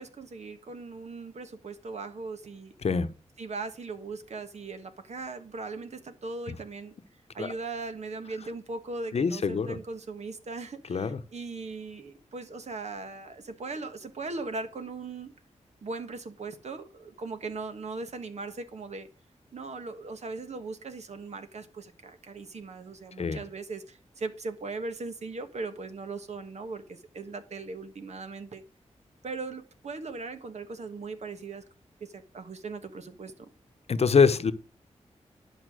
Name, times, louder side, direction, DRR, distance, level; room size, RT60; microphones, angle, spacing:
voice 1, 0.0-2.7 3.4-6.9 7.3-15.3 15.8-19.1 19.5-28.6 29.2-31.6 32.0-33.5, right 3 dB, 65° right, 9 dB, 1.5 m, -39 dB
voice 2, 9.1-9.8 10.9-11.2 23.2-23.4 33.9-34.5, left 5 dB, 60° left, 11 dB, 0.9 m, -24 dB
11.0 x 5.6 x 6.3 m, 0.37 s
wide cardioid pair, 80°, 12 cm